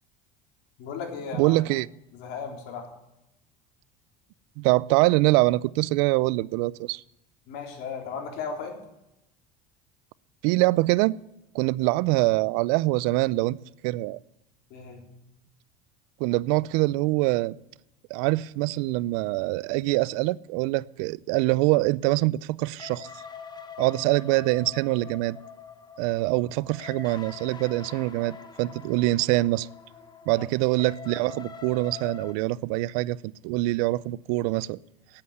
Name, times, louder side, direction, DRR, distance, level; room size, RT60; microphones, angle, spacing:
voice 1, 0.8-1.6 2.1-2.9 7.5-8.7 14.7-15.0 30.3-30.4, left 6 dB, 65° left, 3.6 m, -36 dB
voice 2, 1.4-1.9 4.6-7.0 10.4-11.2 11.5-13.6 13.8-14.2 16.2-17.6 18.1-23.1 23.8-25.4 26.0-29.7 30.3-34.8, right 20 dB, 75° right, 0.4 m, -24 dB
sound 1, 22.8-32.3, left 6 dB, 25° left, 1.2 m, -44 dB
9.9 x 8.7 x 9.3 m
supercardioid pair, 115°, 18 cm